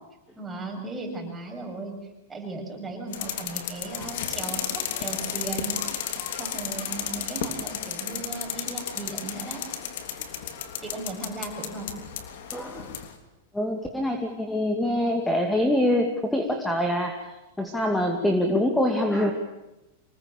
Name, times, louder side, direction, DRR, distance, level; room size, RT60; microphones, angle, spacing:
voice 1, 0.4-1.9 2.3-5.8 6.4-9.6 10.8-11.9, right 3 dB, 10° right, 1 dB, 7.4 m, -36 dB
sound 1, 3.1-13.1, left 9 dB, 65° left, 3.2 m, -33 dB
voice 2, 12.5-12.9 13.5-17.1 17.6-19.3, left 1 dB, 5° left, 4 dB, 2.4 m, -24 dB
26.0 x 20.0 x 8.6 m, 1.0 s
hypercardioid pair, 125°, 0 cm